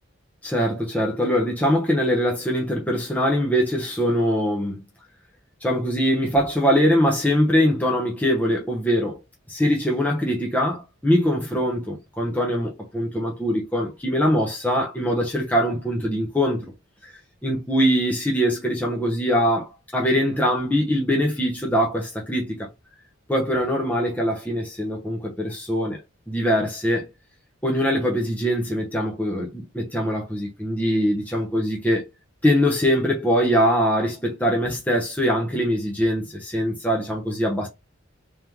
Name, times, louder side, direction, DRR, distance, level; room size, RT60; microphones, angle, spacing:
voice 1, 0.4-4.8 5.6-9.2 9.5-16.7 17.0-17.1 17.4-22.7 23.3-26.0 26.3-27.1 27.6-32.1 32.4-37.7, equal, 10° left, 0.9 m, -22 dB
3.6 x 3.3 x 3.0 m
head